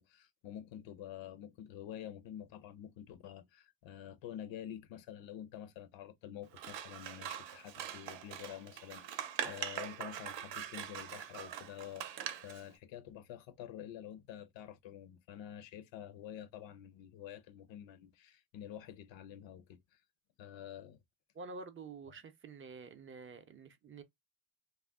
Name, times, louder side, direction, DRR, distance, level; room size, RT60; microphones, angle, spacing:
voice 1, 0.0-20.0 20.4-21.0, left 10 dB, 85° left, 0.6 m, -48 dB
Scissors, 6.5-12.6, right 9 dB, 80° right, 0.6 m, -43 dB
voice 2, 21.3-24.0, right 4 dB, 30° right, 0.4 m, -48 dB
2.4 x 2.1 x 3.4 m
cardioid pair, 130°, 44 cm